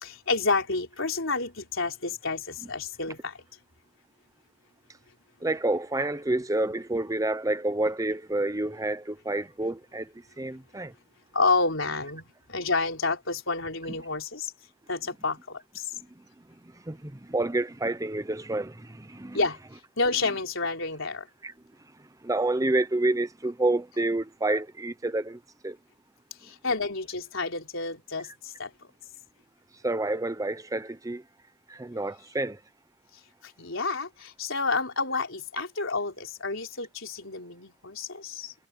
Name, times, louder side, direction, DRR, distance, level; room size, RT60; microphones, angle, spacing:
voice 1, 0.0-3.3 11.3-14.5 14.9-15.8 19.3-19.6 20.0-21.3 26.5-28.3 28.6-28.7 33.6-38.5, left 3 dB, 65° left, 4.5 m, -29 dB
voice 2, 5.4-10.9 16.9-19.4 21.4-21.5 22.2-25.8 29.8-31.2 31.7-32.6, right 2 dB, 15° right, 0.7 m, -29 dB
head